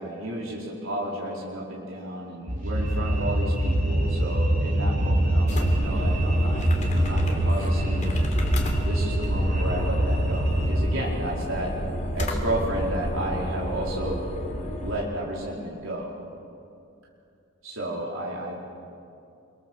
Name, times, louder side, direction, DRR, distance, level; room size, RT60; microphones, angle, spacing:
voice 1, 0.0-6.6 6.9-8.3 8.9-11.7 12.1-14.2 14.8-16.1 17.6-18.6, right 1 dB, 65° right, -4 dB, 4.5 m, -32 dB
sound 1, 2.5-10.8, right 1 dB, 35° right, 4.3 m, -24 dB
sound 2, 5.5-15.0, equal, 35° left, 3.1 m, -30 dB
29.0 x 25.0 x 7.4 m, 2.5 s
head